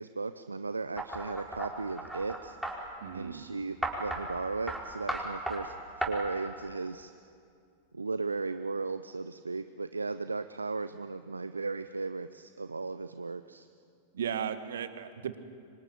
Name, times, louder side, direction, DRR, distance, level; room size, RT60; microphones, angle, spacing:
voice 1, 0.0-2.6 3.1-7.1 7.9-13.7, right 3 dB, 80° right, 12 dB, 0.7 m, -36 dB
sound 1, 1.0-2.8 3.8-4.2 4.7-4.8 5.1-5.6 6.0-6.1, right 2 dB, 5° right, 5.0 m, -35 dB
voice 2, 3.0-3.5 14.1-15.4, right 8 dB, 65° right, 11 dB, 1.7 m, -35 dB
26.5 x 24.5 x 9.2 m, 2.4 s
figure-of-eight pair, 90°, 0 cm